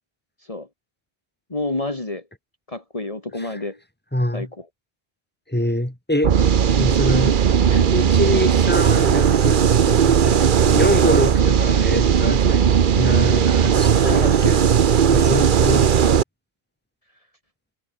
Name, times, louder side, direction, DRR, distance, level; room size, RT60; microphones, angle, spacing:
voice 1, 1.5-2.3 2.7-3.8 4.3-4.7 7.7-7.9 9.8-10.1 14.0-14.6 15.1-15.3, left 2 dB, 35° left, 2.4 m, -29 dB
voice 2, 4.1-4.5 5.5-7.4 7.9-9.6 10.0-14.6 15.1-16.0, left 1 dB, 10° left, 3.3 m, -25 dB
sound 1, 6.2-16.2, right 8 dB, 55° right, 0.9 m, -17 dB
omnidirectional pair, 1.0 m